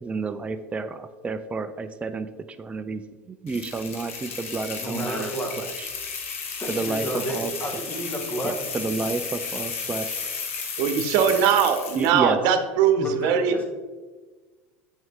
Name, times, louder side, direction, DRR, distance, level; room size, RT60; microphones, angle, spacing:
voice 1, 0.0-2.3 2.6-3.0 3.3-5.3 5.6-5.9 6.7-7.5 8.4-10.1 12.0-12.4, right 3 dB, 20° right, 9 dB, 0.4 m, -30 dB
sound 1, 3.5-12.2, left 5 dB, 90° left, 1.4 m, -33 dB
voice 2, 4.7-5.7 6.6-9.1 13.0-13.6, right 1 dB, 20° left, 2 dB, 1.8 m, -31 dB
voice 3, 10.8-13.6, right 7 dB, 65° right, 8 dB, 1.0 m, -21 dB
7.4 x 6.2 x 3.6 m, 1.3 s
supercardioid pair, 100°, 7 cm